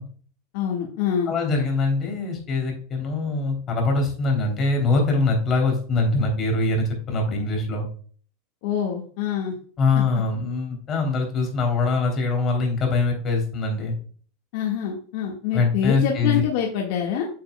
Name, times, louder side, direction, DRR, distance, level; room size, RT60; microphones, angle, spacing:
voice 1, 0.5-1.3 8.6-9.5 14.5-17.3, left 8 dB, 60° left, 0 dB, 1.7 m, -25 dB
voice 2, 1.3-7.9 9.8-13.9 15.5-16.4, left 3 dB, 30° left, 2 dB, 3.2 m, -23 dB
9.0 x 7.2 x 2.3 m, 0.44 s
supercardioid pair, 135°, 0 cm